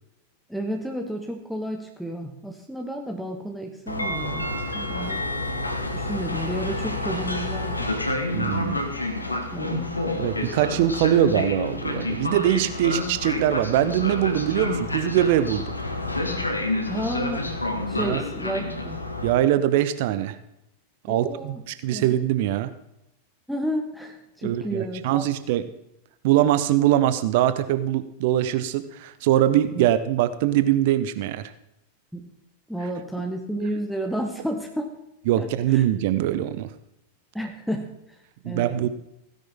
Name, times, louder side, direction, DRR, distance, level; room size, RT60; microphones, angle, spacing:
voice 1, 0.5-4.5 4.7-5.2 5.9-7.9 9.3-9.9 16.9-19.0 21.1-21.6 21.9-22.1 23.5-25.2 29.7-29.9 32.1-32.3 32.7-34.9 35.4-35.8 37.3-37.9 38.4-38.7, equal, ahead, 2 dB, 1.5 m, -31 dB
Train, 3.9-19.3, left 2 dB, 80° left, 1.7 m, -29 dB
voice 2, 8.3-8.8 10.2-15.7 18.0-18.2 19.2-20.4 21.1-22.7 24.4-25.6 26.2-31.5 35.3-36.7 38.4-38.9, right 12 dB, 50° right, 13 dB, 0.8 m, -22 dB
16.5 x 10.5 x 3.8 m, 0.83 s
figure-of-eight pair, 90°, 0 cm